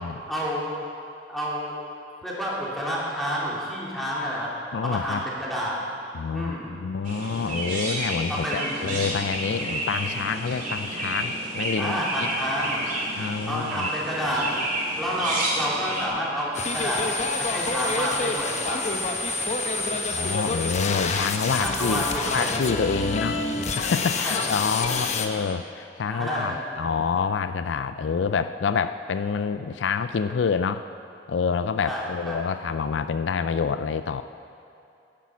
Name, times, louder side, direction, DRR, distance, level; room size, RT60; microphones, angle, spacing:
voice 1, 0.1-0.8 1.3-1.8 2.2-4.5 4.8-5.8 6.3-6.8 8.3-8.9 11.8-12.9 13.5-14.5 15.0-19.6 19.8-20.1 21.6-22.7 24.2-24.6 24.9-25.0 25.3-25.4 26.1-26.8 31.9-32.5, equal, ahead, -6 dB, 3.1 m, -30 dB
voice 2, 4.7-5.2 6.1-12.3 13.2-13.9 19.8-23.4 23.7-30.9 31.3-34.2, left 5 dB, 75° left, 11 dB, 0.4 m, -27 dB
Chirp tweet, 7.0-16.1, right 1 dB, 50° right, 2.6 m, -30 dB
sound 1, 16.5-25.3, left 3 dB, 40° left, 0.9 m, -27 dB
11.0 x 10.0 x 7.1 m, 2.7 s
head